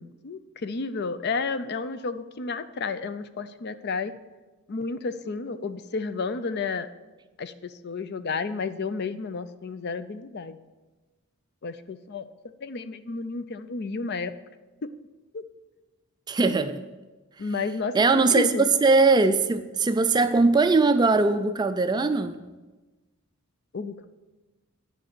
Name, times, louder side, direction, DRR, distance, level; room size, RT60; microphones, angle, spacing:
voice 1, 0.0-4.1 4.7-6.9 7.4-10.6 11.6-12.2 12.6-14.3 15.3-15.4 17.4-18.7 23.7-24.1, left 4 dB, 50° left, 12 dB, 0.5 m, -32 dB
voice 2, 16.3-16.8 17.9-22.4, right 3 dB, 20° right, 10 dB, 0.3 m, -21 dB
10.0 x 5.3 x 6.6 m, 1.2 s
head